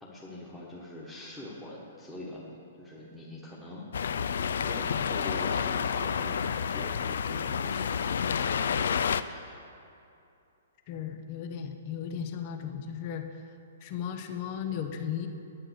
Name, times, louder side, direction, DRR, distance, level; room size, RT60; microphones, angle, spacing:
voice 1, 0.0-9.6, left 1 dB, 5° left, -7 dB, 1.4 m, -44 dB
sound 1, 3.9-9.2, left 7 dB, 75° left, 0.4 m, -29 dB
voice 2, 10.9-13.4 13.8-15.3, left 8 dB, 35° left, 6 dB, 0.7 m, -35 dB
9.1 x 8.8 x 6.3 m, 2.7 s
hypercardioid pair, 155°, 0 cm